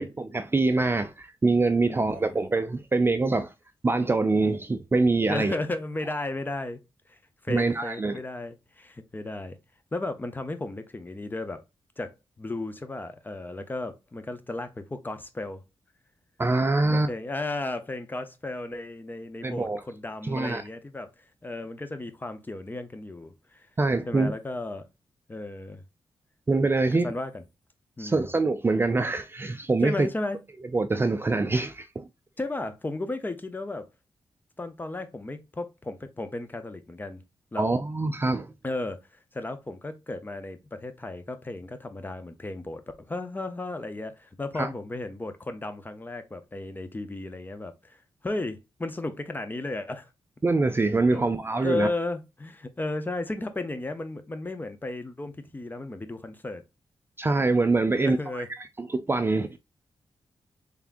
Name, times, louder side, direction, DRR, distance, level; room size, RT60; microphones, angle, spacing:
voice 1, 0.0-3.5 3.8-5.6 7.5-8.2 16.4-17.1 19.4-19.8 20.3-20.6 23.8-24.3 26.5-27.1 28.0-30.1 30.7-32.0 37.6-38.5 44.6-44.7 50.4-51.9 57.2-58.4 58.8-59.5, right 3 dB, 25° right, 0.3 m, -24 dB
voice 2, 1.8-2.4 5.3-6.8 7.1-7.2 7.4-9.6 9.9-11.6 12.0-15.6 16.9-21.1 21.4-23.7 24.1-24.9 25.3-25.8 26.9-27.4 28.0-28.3 29.8-30.4 32.4-33.9 34.6-37.2 37.5-37.7 38.6-39.0 39.3-47.7 48.2-50.1 51.1-51.2 51.6-56.6 57.9-58.5, left 2 dB, 20° left, 0.6 m, -34 dB
3.6 x 3.4 x 2.5 m
cardioid pair, 90°, 9 cm